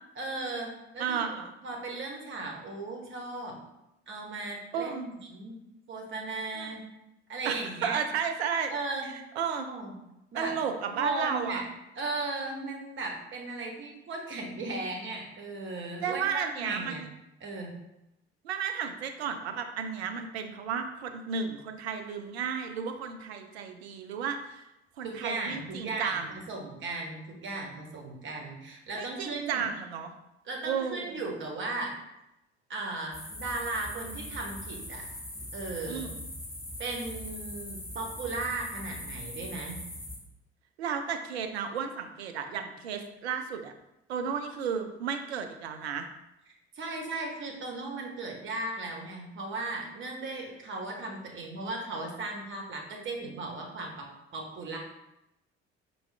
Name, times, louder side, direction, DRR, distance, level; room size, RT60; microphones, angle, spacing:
voice 1, 0.2-1.3 1.6-3.6 4.1-5.6 5.9-6.8 7.3-8.0 8.7-9.1 9.6-9.9 10.3-10.6 10.9-11.6 12.0-17.1 17.4-17.8 25.0-29.7 30.4-32.0 32.7-35.0 35.5-36.0 36.8-39.8 46.7-54.8, right 3 dB, 35° right, 0 dB, 0.9 m, -36 dB
voice 2, 1.0-1.5 4.7-5.1 6.6-6.7 7.4-8.7 9.0-9.7 10.3-11.6 16.0-17.1 18.4-24.7 25.0-26.3 29.0-30.1 30.6-31.2 35.9-36.2 40.8-43.7 44.1-46.1, right 7 dB, 75° right, 6 dB, 0.5 m, -33 dB
sound 1, 33.1-40.2, left 1 dB, 10° left, 1.1 m, -41 dB
4.6 x 2.3 x 3.2 m, 0.90 s
figure-of-eight pair, 50°, 33 cm